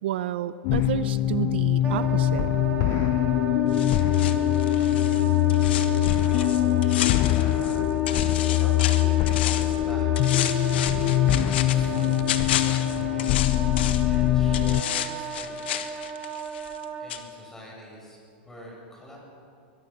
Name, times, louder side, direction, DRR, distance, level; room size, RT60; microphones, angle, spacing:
voice 1, 0.0-2.5, right 12 dB, 75° right, 14 dB, 0.7 m, -30 dB
sound 1, 0.6-14.8, left 15 dB, 45° left, 0.6 m, -23 dB
Wind instrument woodwind instrument, 1.8-17.1, right 5 dB, 20° right, 2.3 m, -35 dB
sound 2, 3.7-7.8 8.1-9.8 10.2-14.1 14.5-16.8 17.1-17.2, left 11 dB, 70° left, 1.5 m, -32 dB
voice 2, 6.2-7.8 8.2-10.6 11.0-16.0 16.5-19.2, equal, 10° left, -2 dB, 7.8 m, -46 dB
22.0 x 22.0 x 5.8 m, 2.3 s
supercardioid pair, 135°, 6 cm